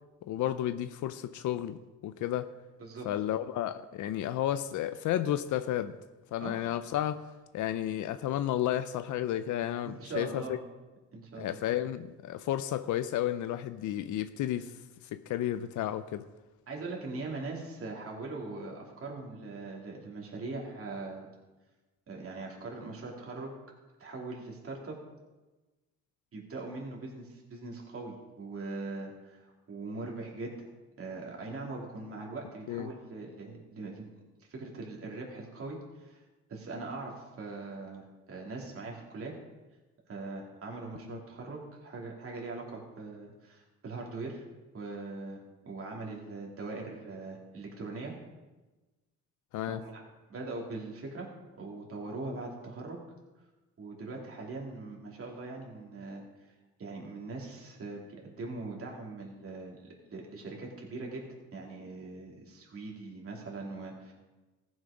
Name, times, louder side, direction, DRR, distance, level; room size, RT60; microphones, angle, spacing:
voice 1, 0.2-2.5 3.0-6.0 6.3-7.3 7.5-10.6 11.4-14.7 15.1-16.2 32.7-32.9 41.1-41.2 49.5-49.8, left 12 dB, 75° left, 0.6 m, -32 dB
voice 2, 9.8-10.6 11.1-11.6 16.7-21.3 22.1-23.5 24.0-25.0 26.3-30.7 31.0-34.1 34.5-36.2 36.5-39.3 40.1-44.4 44.7-45.4 45.6-48.1 49.6-50.0 50.3-51.3 51.5-53.0 53.8-56.2 56.8-61.2 61.5-64.1, right 3 dB, 50° right, 2.7 m, -41 dB
15.0 x 6.3 x 5.0 m
cardioid pair, 90°, 30 cm